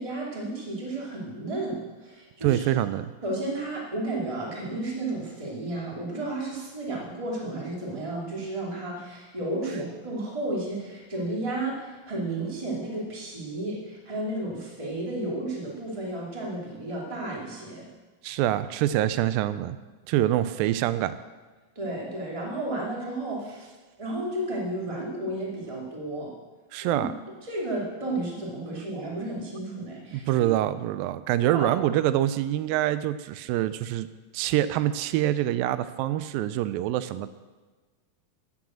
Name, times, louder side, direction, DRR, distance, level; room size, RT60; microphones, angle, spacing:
voice 1, 0.0-2.6 3.2-17.9 21.8-23.7 24.0-26.3 26.8-27.1 27.4-30.5 31.4-31.7, right 2 dB, 10° right, -4 dB, 1.9 m, -32 dB
voice 2, 2.4-3.1 18.2-19.8 20.1-21.2 26.7-27.1 30.1-34.1 34.3-37.3, right 13 dB, 85° right, 13 dB, 2.3 m, -25 dB
11.0 x 7.8 x 7.4 m, 1.3 s
omnidirectional pair, 4.0 m